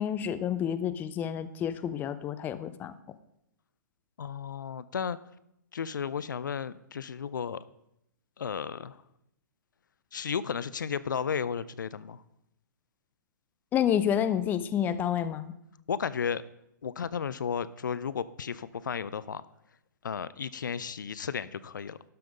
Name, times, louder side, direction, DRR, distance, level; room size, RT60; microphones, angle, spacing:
voice 1, 0.0-2.9 13.7-15.5, left 9 dB, 20° left, 13 dB, 0.5 m, -29 dB
voice 2, 4.2-5.2 5.7-7.6 8.4-9.0 10.1-12.2 15.9-16.4 16.8-19.4 20.0-22.0, left 7 dB, 75° left, 17 dB, 0.5 m, -33 dB
12.5 x 5.7 x 5.0 m, 0.80 s
hypercardioid pair, 125°, 10 cm